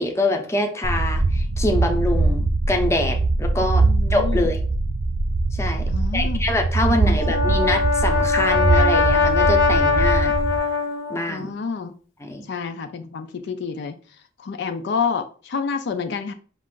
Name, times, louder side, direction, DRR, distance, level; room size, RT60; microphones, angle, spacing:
voice 1, 0.0-4.6 5.5-10.3 11.1-11.5 12.2-12.4, left 1 dB, 15° left, 4 dB, 0.6 m, -25 dB
sound 1, 0.8-10.6, right 3 dB, 35° right, 0.3 m, -22 dB
voice 2, 3.8-4.5 5.9-6.4 6.9-7.2 11.3-11.9 12.5-13.9 14.4-16.3, left 5 dB, 65° left, 8 dB, 0.4 m, -28 dB
Brass instrument, 7.0-11.3, left 4 dB, 85° left, 0.7 m, -21 dB
5.4 x 2.5 x 3.6 m, 0.41 s
head